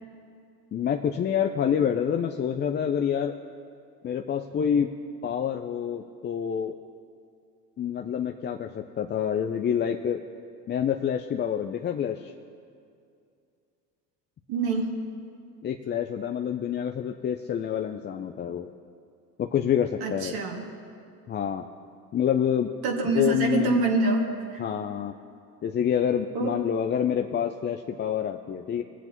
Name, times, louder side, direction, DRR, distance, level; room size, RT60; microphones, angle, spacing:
voice 1, 0.7-3.3 4.0-4.9 5.2-6.8 7.8-10.2 10.7-12.3 15.6-18.7 19.4-20.3 21.3-21.6 22.1-22.7 23.0-23.8 24.6-25.1 25.6-28.8, left 8 dB, 25° left, 4 dB, 0.5 m, -27 dB
voice 2, 14.5-15.0 20.0-20.6 22.8-24.6 26.3-26.5, right 3 dB, 50° right, 0 dB, 2.2 m, -26 dB
21.5 x 8.1 x 3.0 m, 2.4 s
hypercardioid pair, 70°, 48 cm